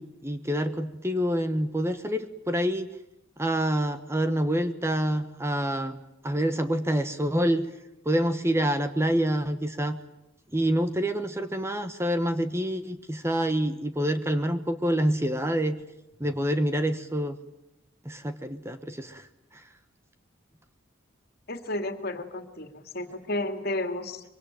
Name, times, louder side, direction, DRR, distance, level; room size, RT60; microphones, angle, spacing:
voice 1, 0.0-2.9 3.4-6.0 6.2-7.7 8.0-10.0 10.5-15.8 16.2-17.4 18.0-19.3, equal, 15° right, 9 dB, 1.1 m, -27 dB
voice 2, 21.5-24.2, left 1 dB, 50° left, 7 dB, 2.5 m, -32 dB
25.0 x 23.5 x 9.2 m, 0.88 s
head